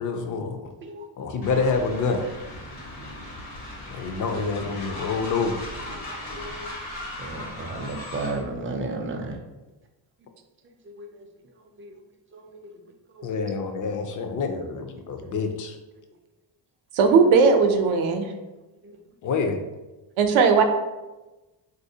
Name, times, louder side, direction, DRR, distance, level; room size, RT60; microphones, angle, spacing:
voice 1, 0.0-0.7 1.2-2.2 3.9-5.6 13.2-15.8 19.2-19.6, left 4 dB, 45° left, 6 dB, 0.4 m, -27 dB
voice 2, 0.8-1.3 2.9-3.3 5.8-9.4 10.8-12.0 12.3-12.8 13.1-13.4 15.2-15.3 17.1-17.2 18.8-19.0, right 2 dB, 30° right, 3 dB, 0.4 m, -36 dB
Train, 1.4-8.5, left 1 dB, 80° left, 1.1 m, -38 dB
voice 3, 16.9-18.3 20.2-20.6, right 5 dB, 80° right, 5 dB, 0.6 m, -18 dB
3.5 x 2.6 x 2.7 m, 1.1 s
cardioid pair, 115°, 48 cm